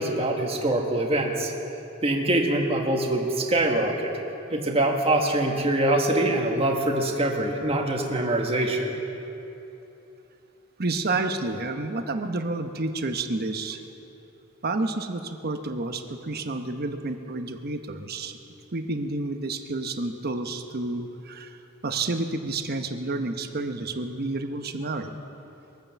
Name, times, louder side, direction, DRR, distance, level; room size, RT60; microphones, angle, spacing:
voice 1, 0.0-1.5 2.0-4.1 4.5-9.0, right 1 dB, 30° right, 1 dB, 1.6 m, -24 dB
voice 2, 10.8-13.8 14.6-18.4 18.7-21.6 21.8-25.1, right 2 dB, 50° right, 6 dB, 1.0 m, -30 dB
22.5 x 9.1 x 7.1 m, 3.0 s
head